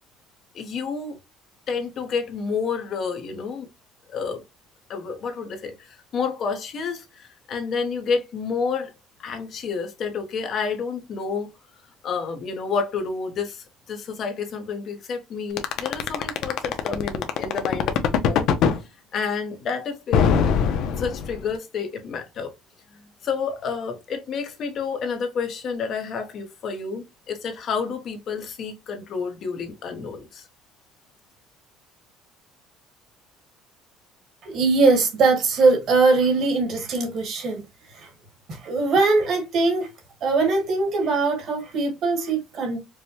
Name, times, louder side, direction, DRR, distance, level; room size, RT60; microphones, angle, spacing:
voice 1, 0.5-1.2 1.7-3.7 4.1-4.4 4.9-8.9 9.2-11.5 12.0-18.5 19.1-20.4 21.0-22.5 22.9-30.5, left 5 dB, 45° left, 1.0 m, -29 dB
sound 1, 15.6-18.8 20.1-21.5, left 7 dB, 65° left, 0.6 m, -21 dB
voice 2, 34.4-37.6 37.9-38.1 38.5-39.9 40.2-42.8, right 3 dB, 50° right, 1.5 m, -21 dB
4.8 x 2.2 x 2.8 m
cardioid pair, 140°, 0 cm